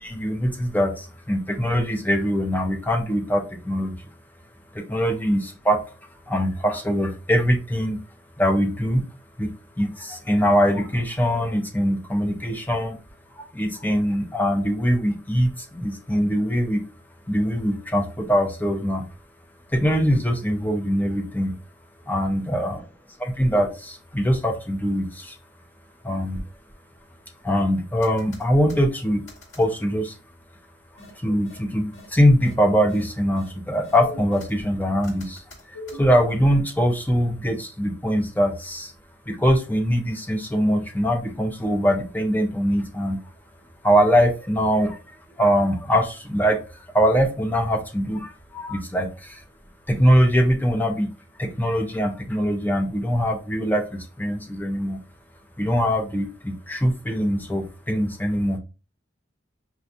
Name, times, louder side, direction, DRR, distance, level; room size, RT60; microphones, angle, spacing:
voice 1, 0.0-3.9 4.7-5.8 6.3-8.0 8.4-9.0 9.4-9.5 9.8-13.0 13.4-16.8 17.3-19.0 19.7-21.5 22.1-22.8 23.2-25.4 26.0-26.4 27.4-29.2 29.6-30.1 31.2-35.4 35.7-38.9 39.3-43.2 43.8-45.0 45.4-49.4 49.9-51.1 51.4-55.0 55.6-58.6, equal, 10° left, 0.7 m, -22 dB
sound 1, 28.0-28.8 29.3-29.6 31.0-31.1 31.4-31.6 31.9-32.1 32.4-32.5 32.9-33.0 33.4-33.5 33.8-34.5 35.0-36.0, left 1 dB, 80° left, 2.1 m, -39 dB
6.0 x 2.3 x 2.7 m
head